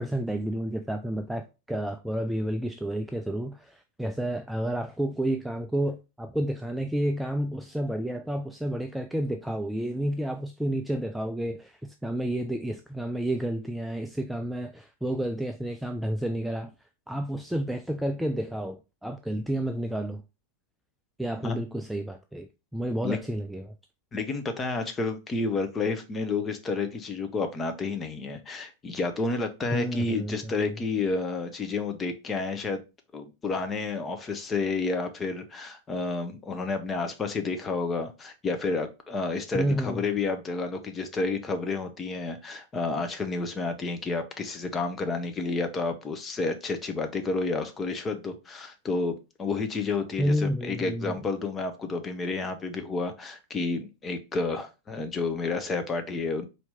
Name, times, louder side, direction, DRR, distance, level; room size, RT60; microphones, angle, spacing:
voice 1, 0.0-16.7 17.1-20.2 21.2-23.7 29.7-30.7 39.5-40.0 50.2-51.2, right 1 dB, 5° right, 0.3 m, -30 dB
voice 2, 24.1-32.8 33.1-56.5, left 3 dB, 20° left, 0.7 m, -30 dB
4.3 x 2.7 x 3.4 m
figure-of-eight pair, 90°, 0 cm